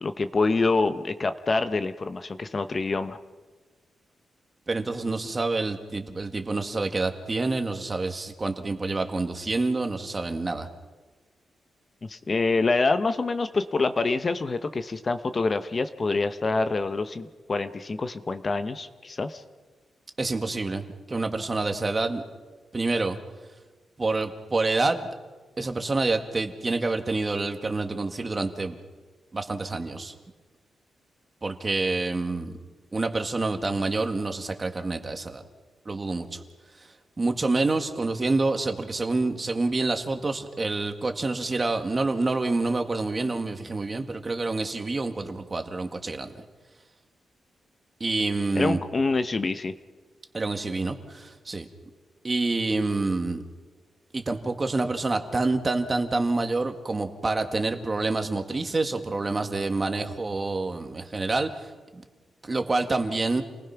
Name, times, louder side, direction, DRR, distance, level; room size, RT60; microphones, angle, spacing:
voice 1, 0.0-3.2 12.0-19.4 48.5-49.7, left 3 dB, 35° left, 10 dB, 0.9 m, -26 dB
voice 2, 4.7-10.7 20.2-22.2 22.7-23.2 24.0-25.1 25.6-28.8 29.3-30.1 31.4-32.6 32.9-35.4 35.9-36.4 37.2-46.4 48.0-48.8 50.3-51.7 52.2-53.4 54.1-62.0 62.4-63.4, right 3 dB, 25° right, 6 dB, 1.9 m, -27 dB
29.0 x 19.5 x 5.9 m, 1.3 s
cardioid pair, 115°, 0 cm